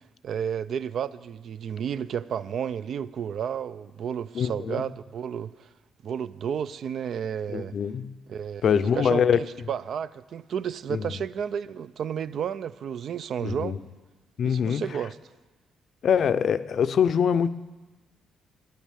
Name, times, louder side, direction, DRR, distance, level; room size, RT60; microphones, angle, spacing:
voice 1, 0.0-5.7 6.0-7.7 8.3-13.8 14.4-15.2, right 8 dB, 65° right, 0.4 m, -32 dB
voice 2, 4.3-4.8 7.5-8.2 8.6-9.4 10.9-11.0 13.4-13.8 14.4-14.8 16.0-17.5, left 7 dB, 60° left, 0.5 m, -23 dB
10.0 x 9.3 x 8.2 m
cardioid pair, 90°, 0 cm